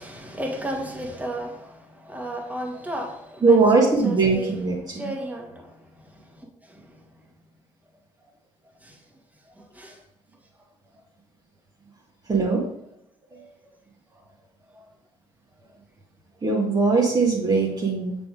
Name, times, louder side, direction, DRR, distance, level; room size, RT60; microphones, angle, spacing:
voice 1, 0.0-4.5 4.9-5.7 6.1-6.9 8.8-9.0 9.6-10.0 14.7-14.9, right 1 dB, 10° right, 1.6 m, -34 dB
voice 2, 3.4-5.1 12.3-12.7 13.3-13.4 16.4-18.2, right 4 dB, 25° right, 1.4 m, -20 dB
6.8 x 3.6 x 4.8 m
hypercardioid pair, 55°, 15 cm